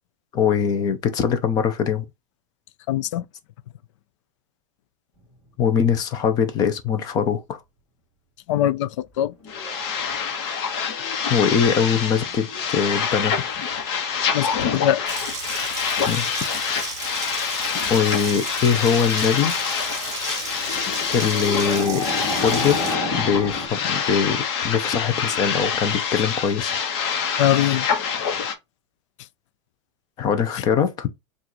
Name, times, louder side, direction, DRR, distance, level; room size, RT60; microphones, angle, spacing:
voice 1, 0.3-2.1 5.6-7.6 11.3-13.4 16.1-16.4 17.9-19.6 21.1-22.8 23.1-26.7 30.2-31.1, left 7 dB, 25° left, 0.6 m, -22 dB
voice 2, 2.9-3.3 8.5-9.3 14.3-15.0 27.4-27.9, left 12 dB, 70° left, 0.4 m, -22 dB
sound 1, 9.3-13.4 13.7-16.6 18.1-18.2 19.2-23.7, left 2 dB, ahead, 2.2 m, -34 dB
sound 2, 9.5-28.5, left 7 dB, 55° left, 1.1 m, -26 dB
Water tap faucet, 15.1-22.9, right 6 dB, 20° right, 0.9 m, -34 dB
6.1 x 2.5 x 2.9 m
supercardioid pair, 175°, 16 cm